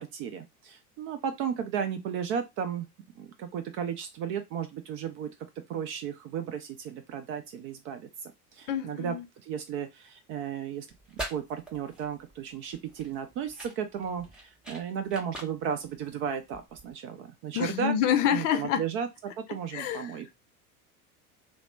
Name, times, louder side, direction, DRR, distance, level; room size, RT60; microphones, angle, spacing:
voice 1, 0.0-2.9 3.2-5.3 5.7-9.2 9.4-10.9 11.1-17.9 18.3-20.3, right 8 dB, 30° right, 0.4 m, -34 dB
voice 2, 8.7-9.2 17.5-18.8 19.7-20.1, left 9 dB, 55° left, 0.6 m, -27 dB
sound 1, 10.9-16.9, right 1 dB, ahead, 1.0 m, -44 dB
2.9 x 2.0 x 3.1 m
figure-of-eight pair, 80°, 45 cm